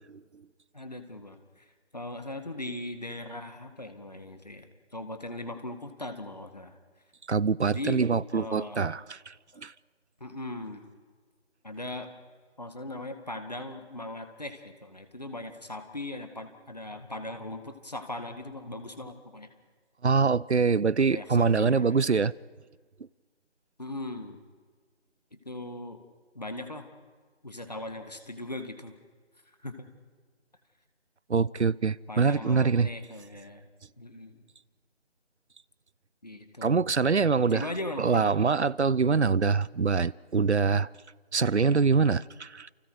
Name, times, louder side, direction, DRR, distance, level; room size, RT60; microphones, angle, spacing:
voice 1, 0.7-1.7 1.9-6.8 7.6-8.0 8.3-9.0 9.5-9.6 10.2-10.8 11.6-12.1 12.6-19.5 21.1-22.2 23.8-24.4 25.3-26.0 26.3-26.9 27.4-28.9 29.6-29.9 32.1-33.7 34.0-34.4 36.2-36.8 37.5-38.4, left 1 dB, 35° left, 2.0 m, -39 dB
voice 2, 7.3-9.7 20.0-22.3 31.3-32.9 36.6-37.7 38.0-40.9 41.3-42.7, right 5 dB, 75° right, 0.7 m, -24 dB
30.0 x 29.0 x 4.9 m
figure-of-eight pair, 180°, 34 cm